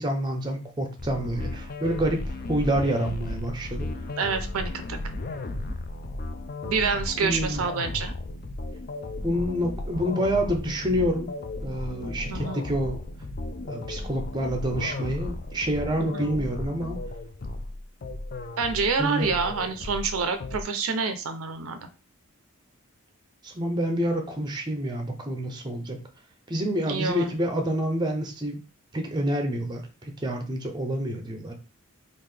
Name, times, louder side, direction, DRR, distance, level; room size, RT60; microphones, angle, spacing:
voice 1, 0.0-3.9 7.2-7.6 9.2-11.3 11.6-13.0 13.6-17.0 19.0-19.3 23.4-26.0 26.5-28.6 28.9-31.5, equal, 20° right, 4 dB, 0.6 m, -28 dB
sound 1, 1.0-20.6, left 2 dB, 40° left, 0.4 m, -35 dB
voice 2, 4.2-5.0 6.6-8.1 12.3-12.6 16.0-16.3 18.6-21.8 26.9-27.3, right 5 dB, 75° right, 9 dB, 0.5 m, -27 dB
3.7 x 2.5 x 3.3 m, 0.32 s
head